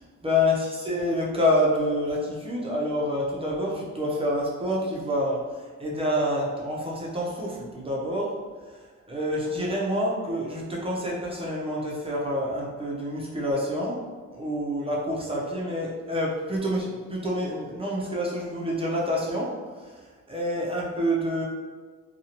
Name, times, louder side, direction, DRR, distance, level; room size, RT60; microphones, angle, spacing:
voice 1, 0.0-5.5 5.8-8.4 9.1-14.0 14.3-19.5 20.3-21.5, left 1 dB, 20° right, -4 dB, 0.6 m, -27 dB
2.7 x 2.3 x 2.8 m, 1.5 s
cardioid pair, 90°, 30 cm